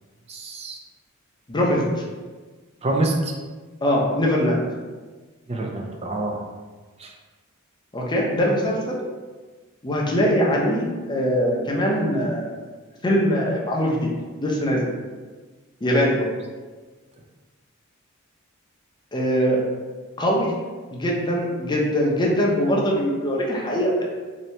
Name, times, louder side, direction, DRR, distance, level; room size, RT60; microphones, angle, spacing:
voice 1, 0.3-0.8 2.8-3.3 5.5-6.4 7.0-7.1, right 2 dB, 30° right, 0 dB, 0.5 m, -26 dB
voice 2, 1.5-1.9 3.8-4.6 7.9-9.0 9.8-12.6 13.0-14.1 14.4-14.9 15.8-16.2 19.1-19.6 20.2-20.5 20.9-24.0, equal, 20° left, -3 dB, 0.6 m, -22 dB
2.7 x 2.7 x 3.2 m, 1.3 s
head